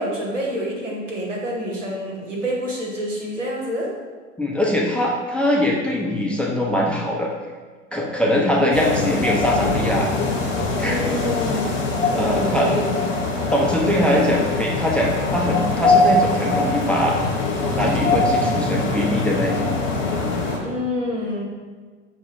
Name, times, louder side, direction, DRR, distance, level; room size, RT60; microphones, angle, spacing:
voice 1, 0.0-3.9 8.5-9.1 10.8-11.7 12.1-13.1 20.6-21.4, equal, 90° right, -3 dB, 1.0 m, -27 dB
voice 2, 4.4-7.3 7.9-10.1 10.8-11.0 12.1-12.7 13.5-17.2 17.7-19.7, left 1 dB, 5° left, -2 dB, 0.4 m, -22 dB
sound 1, 8.7-20.6, left 3 dB, 80° left, 1.0 m, -22 dB
5.9 x 2.1 x 3.6 m, 1.5 s
figure-of-eight pair, 80°, 37 cm